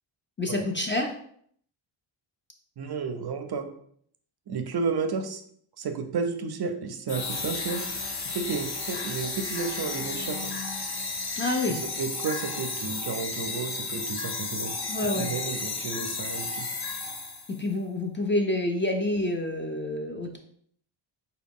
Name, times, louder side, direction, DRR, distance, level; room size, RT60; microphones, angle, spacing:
voice 1, 0.4-1.1 11.4-11.8 14.9-15.3 17.5-20.4, left 2 dB, 25° left, 3 dB, 0.4 m, -28 dB
voice 2, 2.8-3.7 4.5-5.4 5.8-7.8 8.2-10.6 11.7-14.7 15.0-16.7, right 5 dB, 55° right, 7 dB, 0.5 m, -32 dB
sound 1, 7.1-17.6, left 3 dB, 50° left, 0.7 m, -33 dB
4.6 x 2.3 x 3.5 m, 0.63 s
wide cardioid pair, 125°, 50 cm